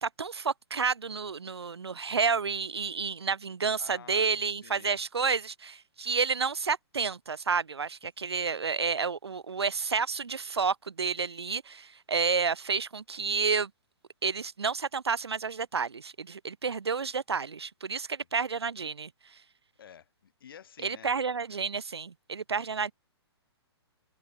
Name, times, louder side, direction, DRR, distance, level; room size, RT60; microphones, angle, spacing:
voice 1, 0.0-13.7 14.2-19.1 20.8-22.9, right 5 dB, 70° right, 1.6 m, -30 dB
voice 2, 3.8-4.3 4.6-5.0 8.3-8.6 19.8-21.1, left 8 dB, 55° left, 4.5 m, -51 dB
figure-of-eight pair, 120°, 14 cm